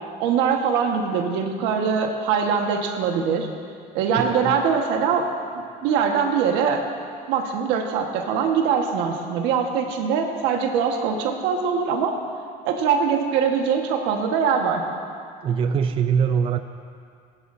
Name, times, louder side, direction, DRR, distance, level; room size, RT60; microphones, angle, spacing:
voice 1, 0.2-3.5 3.9-5.3 5.5-6.9 7.3-12.2 12.6-14.8, right 6 dB, 80° right, 3 dB, 1.4 m, -22 dB
voice 2, 4.2-4.6 15.4-16.6, right 7 dB, 30° right, 7 dB, 0.4 m, -22 dB
19.5 x 11.0 x 2.7 m, 2.3 s
cardioid pair, 140°, 18 cm